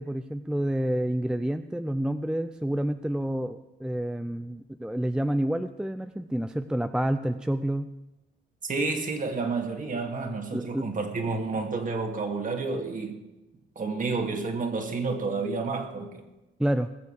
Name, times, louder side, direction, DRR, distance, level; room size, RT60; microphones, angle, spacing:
voice 1, 0.0-7.9 10.5-10.9 16.6-16.9, right 1 dB, 5° right, 10 dB, 0.5 m, -29 dB
voice 2, 8.6-13.2 13.8-16.2, right 4 dB, 40° right, 4 dB, 2.4 m, -30 dB
20.0 x 6.8 x 6.7 m, 1.0 s
cardioid pair, 90°, 20 cm